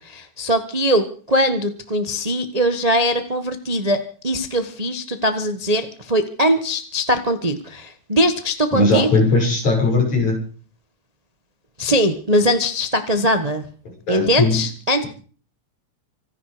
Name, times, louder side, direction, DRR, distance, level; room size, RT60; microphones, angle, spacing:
voice 1, 0.0-9.1 11.8-13.7 14.1-15.0, equal, 60° right, 8 dB, 0.4 m, -21 dB
voice 2, 8.7-10.4 14.1-14.6, left 2 dB, 65° left, 1 dB, 7.8 m, -18 dB
25.5 x 10.5 x 5.1 m, 0.42 s
omnidirectional pair, 3.4 m